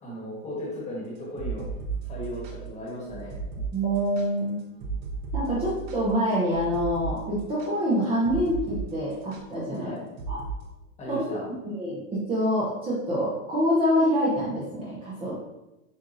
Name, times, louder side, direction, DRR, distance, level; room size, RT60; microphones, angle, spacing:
voice 1, 0.0-1.7 2.1-3.4 9.7-10.0 11.0-11.4, left 1 dB, 15° left, -4 dB, 1.4 m, -36 dB
sound 1, 1.2-8.8 9.1-9.4 10.2-10.6, right 5 dB, 45° right, 0.9 m, -35 dB
voice 2, 3.7-4.6 5.3-10.0 10.3-10.4 11.1-11.3 11.6-12.0 12.3-15.4, equal, 15° right, -8 dB, 0.8 m, -26 dB
7.2 x 2.5 x 2.6 m, 0.95 s
hypercardioid pair, 140°, 43 cm